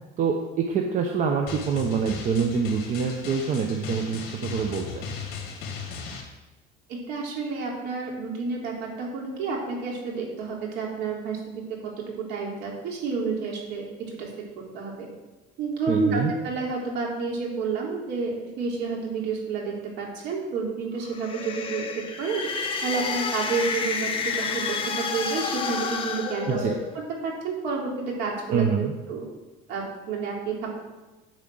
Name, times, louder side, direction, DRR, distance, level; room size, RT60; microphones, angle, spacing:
voice 1, 0.2-5.1 15.9-16.3 26.5-26.8 28.5-28.9, right 6 dB, 40° right, 2 dB, 1.0 m, -26 dB
Drum, 1.5-6.2, left 5 dB, 55° left, 2.4 m, -37 dB
voice 2, 6.9-14.3 14.6-15.1 15.6-22.4 22.8-26.6 27.2-28.7 29.1-29.2 29.7-30.8, right 4 dB, 65° right, -2 dB, 3.3 m, -30 dB
sound 1, 21.0-27.1, left 5 dB, 25° left, 1.1 m, -30 dB
11.0 x 5.0 x 7.9 m, 1.1 s
cardioid pair, 145°, 19 cm